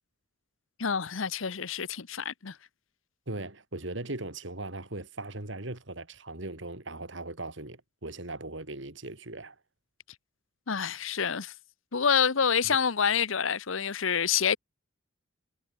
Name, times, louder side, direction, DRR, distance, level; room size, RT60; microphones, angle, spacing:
voice 1, 0.8-2.6 10.7-11.5 11.9-14.6, left 7 dB, 75° left, 0.9 m, -27 dB
voice 2, 3.3-9.5 12.6-12.8, right 2 dB, 65° right, 2.7 m, -39 dB
head